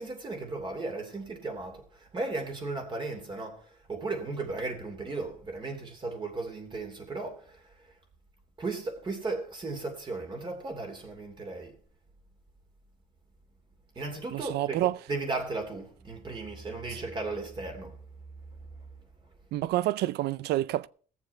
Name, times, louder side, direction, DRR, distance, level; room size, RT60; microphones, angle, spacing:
voice 1, 0.0-7.7 8.6-11.7 14.0-14.8 15.1-18.0, right 3 dB, 30° right, 2.8 m, -36 dB
voice 2, 14.3-15.0 16.9-17.0 19.5-20.9, right 14 dB, 75° right, 0.5 m, -28 dB
17.5 x 7.1 x 4.4 m
cardioid pair, 110°, 17 cm